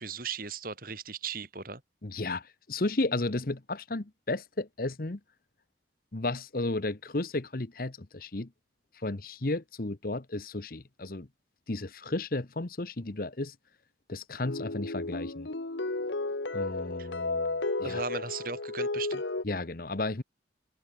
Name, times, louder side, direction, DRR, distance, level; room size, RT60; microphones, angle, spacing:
voice 1, 0.0-1.8 17.0-17.1 17.8-19.2, right 5 dB, 50° right, 4.4 m, -37 dB
voice 2, 2.0-5.2 6.1-8.5 8.9-11.3 11.7-13.5 14.1-15.5 16.5-18.0 19.4-20.2, left 2 dB, 50° left, 1.1 m, -33 dB
sound 1, 14.4-19.4, left 2 dB, 85° left, 1.6 m, -33 dB
head